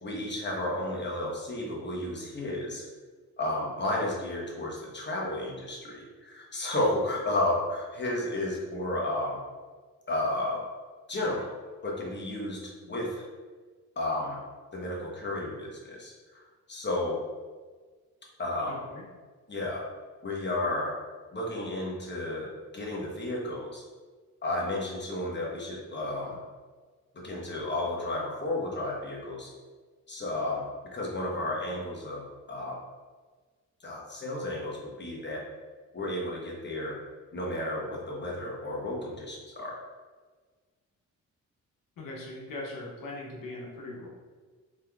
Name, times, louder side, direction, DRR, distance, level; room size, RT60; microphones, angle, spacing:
voice 1, 0.0-2.9 3.4-9.4 10.1-10.6 11.1-11.5 11.8-13.2 14.0-14.4 14.7-16.4 16.7-17.2 18.4-18.8 19.5-19.8 20.2-20.9 21.3-22.5 22.7-23.8 24.4-26.4 27.1-29.5 30.1-32.8 33.8-35.4 35.9-37.0 37.3-39.8, left 1 dB, 30° left, -2 dB, 1.0 m, -32 dB
voice 2, 18.7-19.0 42.0-44.1, left 2 dB, 75° left, -3 dB, 1.0 m, -40 dB
3.3 x 2.9 x 2.3 m, 1.4 s
supercardioid pair, 60°, 34 cm